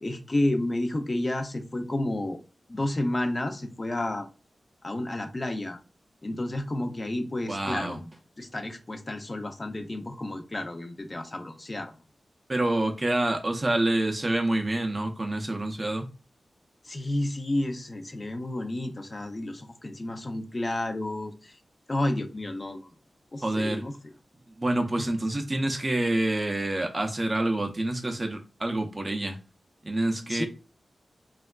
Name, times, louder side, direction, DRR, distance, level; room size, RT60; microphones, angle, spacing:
voice 1, 0.0-2.4 2.7-4.3 4.8-5.8 6.2-8.1 8.4-11.9 16.8-21.6 21.9-22.9 23.3-24.1 30.3-30.5, left 1 dB, 30° left, 0.5 m, -31 dB
voice 2, 7.5-8.0 12.5-16.1 23.4-23.8 24.6-29.4 29.8-30.5, right 1 dB, 25° right, 0.5 m, -27 dB
3.3 x 2.3 x 2.2 m
wide cardioid pair, 100°, 0 cm